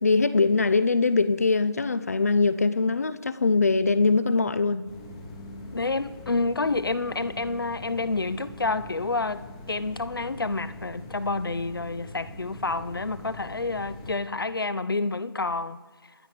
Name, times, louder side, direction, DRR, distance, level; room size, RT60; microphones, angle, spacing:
voice 1, 0.0-4.9, left 4 dB, 40° left, 0.7 m, -22 dB
sound 1, 4.9-14.2, left 1 dB, 10° left, 1.2 m, -43 dB
voice 2, 5.7-9.4 9.7-15.8, left 3 dB, 65° left, 1.0 m, -29 dB
27.5 x 10.0 x 5.0 m
figure-of-eight pair, 165°, 13 cm